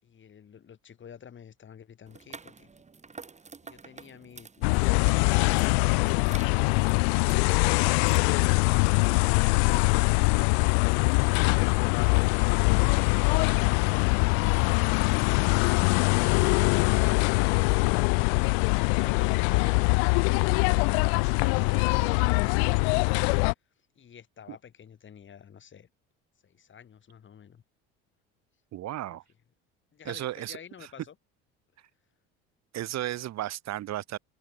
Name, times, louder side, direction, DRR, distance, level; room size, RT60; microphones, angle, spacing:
voice 1, 0.0-2.7 3.6-8.3 17.7-23.1 24.0-25.9 26.4-27.6 29.9-31.2, left 8 dB, 40° left, 5.5 m, -49 dB
sound 1, 2.1-8.2, right 4 dB, 20° right, 4.3 m, -49 dB
sound 2, 4.6-23.5, left 37 dB, 85° left, 0.5 m, -23 dB
voice 2, 28.7-29.2 30.0-30.6 32.7-34.2, right 14 dB, 55° right, 4.2 m, -34 dB
supercardioid pair, 100°, 31 cm